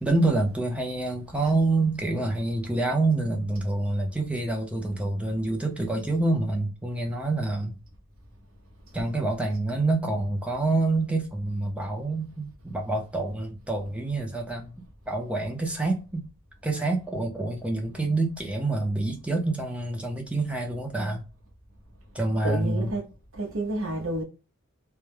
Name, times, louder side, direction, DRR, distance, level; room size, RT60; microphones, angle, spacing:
voice 1, 0.0-7.8 8.9-14.7 15.1-16.2 16.6-21.2 22.1-22.9, right 2 dB, 5° right, 0.4 m, -27 dB
voice 2, 22.4-23.0 23.3-24.2, right 1 dB, 65° right, 0.7 m, -29 dB
2.2 x 2.1 x 3.1 m
head